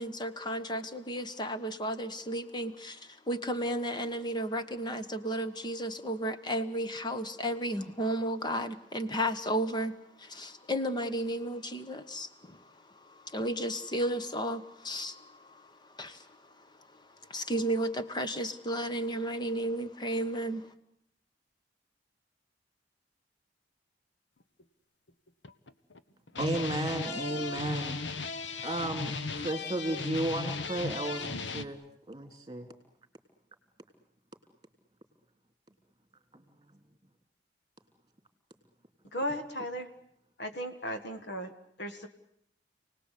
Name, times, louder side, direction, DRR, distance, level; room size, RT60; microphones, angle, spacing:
voice 1, 0.0-16.7 17.3-20.7, right 1 dB, 25° left, 10 dB, 1.4 m, -34 dB
sound 1, 24.6-24.7 25.3-26.0 26.3-31.7, left 4 dB, 80° left, 1.2 m, -36 dB
voice 2, 26.4-28.0 28.6-31.8 32.1-32.7 36.3-36.4, right 1 dB, 25° right, 6 dB, 3.2 m, -34 dB
voice 3, 39.1-39.9 40.4-41.5 41.8-42.1, equal, 65° left, 7 dB, 1.8 m, -36 dB
29.0 x 19.5 x 8.4 m, 0.72 s
head